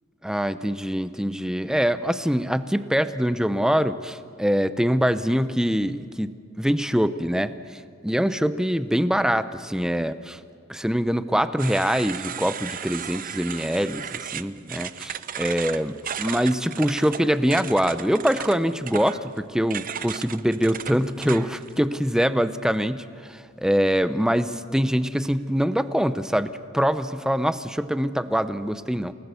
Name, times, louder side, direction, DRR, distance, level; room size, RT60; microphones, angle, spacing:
voice 1, 0.2-6.3 6.6-10.4 10.7-29.1, equal, 5° right, 12 dB, 0.7 m, -24 dB
sound 1, 11.6-21.7, right 8 dB, 45° right, 0.7 m, -35 dB
29.5 x 19.0 x 7.0 m, 2.3 s
head